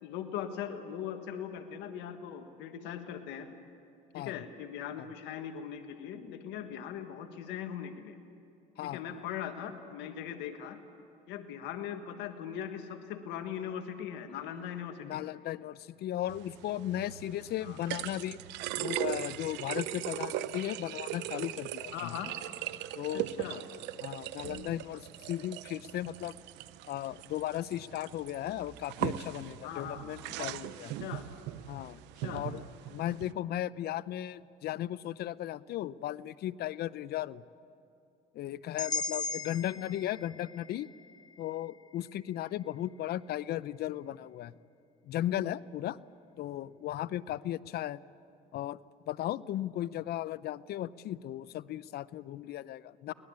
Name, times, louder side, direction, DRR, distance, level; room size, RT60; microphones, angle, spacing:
voice 1, 0.0-3.5 4.1-8.2 8.8-10.8 11.3-15.2 17.6-17.8 21.9-22.3 23.1-23.6 29.6-30.1 31.0-31.2 32.2-32.5, left 9 dB, 80° left, 7 dB, 1.6 m, -40 dB
voice 2, 8.8-9.2 15.0-18.4 18.8-22.1 23.0-23.3 24.0-26.3 26.9-30.9 31.7-32.0 32.3-32.6 32.9-37.4 38.3-40.9 41.4-44.5 45.1-46.0 46.4-48.0 48.5-48.8 49.1-53.1, left 13 dB, 65° left, 19 dB, 0.6 m, -36 dB
sound 1, 16.3-33.3, right 14 dB, 80° right, 0.8 m, -40 dB
sound 2, 38.8-42.8, left 4 dB, 20° left, 1.2 m, -39 dB
23.5 x 19.0 x 8.7 m, 2.8 s
supercardioid pair, 85°, 18 cm